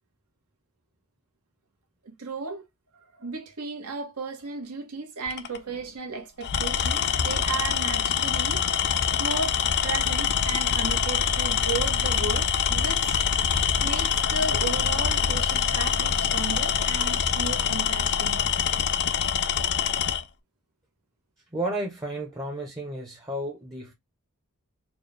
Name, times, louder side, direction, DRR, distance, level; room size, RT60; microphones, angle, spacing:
voice 1, 2.0-2.6 3.1-8.6 9.2-9.6 9.8-13.5 13.8-18.6, right 3 dB, 75° right, 1.3 m, -34 dB
Tools, 5.3-5.6 6.4-20.2, left 8 dB, 50° left, 0.4 m, -25 dB
voice 2, 21.5-23.9, right 1 dB, 15° right, 0.8 m, -32 dB
4.4 x 2.3 x 3.2 m
head